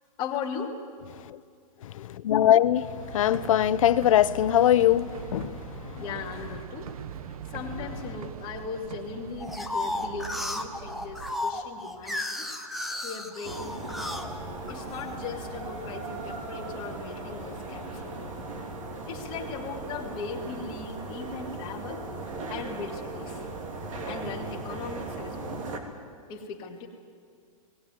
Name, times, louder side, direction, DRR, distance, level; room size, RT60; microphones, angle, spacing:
voice 1, 0.2-0.8 6.0-6.9 7.5-12.5 13.0-14.1 14.7-18.4 19.0-22.1 22.5-23.4 24.0-25.5 26.3-26.9, left 5 dB, 25° left, 0 dB, 2.2 m, -38 dB
voice 2, 1.8-5.9, left 11 dB, 65° left, 14 dB, 0.8 m, -22 dB
sound 1, 3.0-11.4, right 8 dB, 80° right, 1.1 m, -41 dB
sound 2, 9.4-15.1 15.7-16.4, left 2 dB, ahead, 0.7 m, -34 dB
sound 3, 13.4-25.8, right 2 dB, 60° right, 3.0 m, -37 dB
19.0 x 18.5 x 9.5 m, 2.2 s
supercardioid pair, 170°, 18 cm